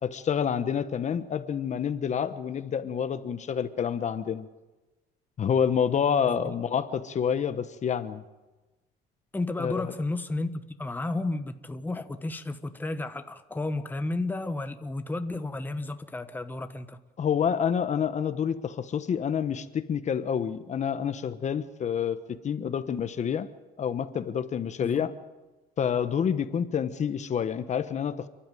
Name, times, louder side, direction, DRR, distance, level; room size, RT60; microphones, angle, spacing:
voice 1, 0.0-4.5 5.4-8.2 9.6-9.9 17.2-22.2 22.4-23.5 23.8-25.1 25.8-28.3, left 7 dB, 45° left, 11 dB, 1.2 m, -28 dB
voice 2, 9.3-17.0 24.8-25.0, left 2 dB, 10° left, 8 dB, 1.2 m, -32 dB
29.0 x 12.0 x 9.3 m, 1.1 s
cardioid pair, 110°, 17 cm